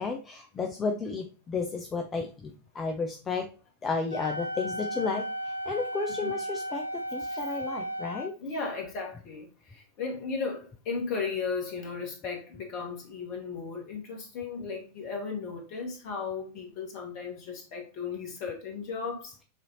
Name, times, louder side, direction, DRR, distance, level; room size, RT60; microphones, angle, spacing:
voice 1, 0.0-3.5 3.8-5.3 5.7-8.3, left 4 dB, 20° left, 0.6 m, -32 dB
Wind instrument woodwind instrument, 4.1-8.3, equal, 85° left, 0.4 m, -35 dB
voice 2, 8.4-19.4, left 5 dB, 45° left, 1.6 m, -35 dB
6.6 x 2.8 x 2.9 m
figure-of-eight pair, 90°, 0 cm